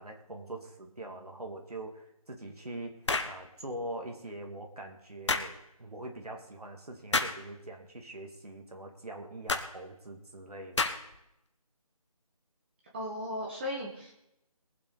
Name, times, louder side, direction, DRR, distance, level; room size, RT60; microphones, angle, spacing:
voice 1, 0.0-10.9, right 1 dB, 85° right, 2 dB, 2.4 m, -43 dB
sound 1, 3.1-3.4 5.3-5.5 7.1-7.4 9.5-9.7 10.8-11.2, left 3 dB, 50° left, 1.2 m, -29 dB
voice 2, 12.9-14.1, left 1 dB, 20° right, -3 dB, 1.5 m, -36 dB
22.5 x 7.8 x 4.0 m, 0.85 s
figure-of-eight pair, 165°, 19 cm